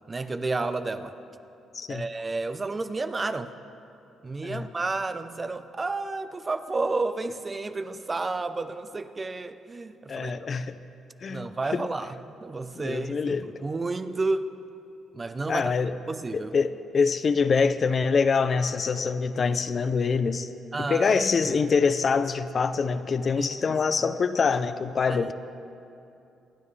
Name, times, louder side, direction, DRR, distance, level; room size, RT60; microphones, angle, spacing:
voice 1, 0.1-1.1 1.9-3.5 4.2-10.3 11.3-14.5 15.1-15.7 16.1-16.6 20.7-21.6 23.4-23.5 25.1-25.3, right 3 dB, 25° right, 11 dB, 0.6 m, -31 dB
voice 2, 1.7-2.1 4.4-4.7 10.1-10.8 11.2-11.9 12.8-13.5 15.5-15.9 16.3-20.5 20.8-25.3, left 5 dB, 45° left, 12 dB, 0.5 m, -25 dB
25.5 x 9.8 x 3.3 m, 2.7 s
cardioid pair, 90°, 0 cm